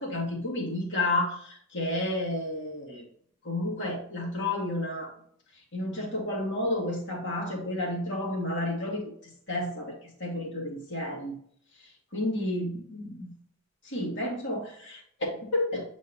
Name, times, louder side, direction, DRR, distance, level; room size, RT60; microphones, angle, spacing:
voice 1, 0.0-3.0 3.4-5.1 5.7-9.0 9.5-11.4 12.1-13.3 13.8-15.8, left 1 dB, 60° left, -2 dB, 2.2 m, -31 dB
8.5 x 4.5 x 2.8 m, 0.62 s
head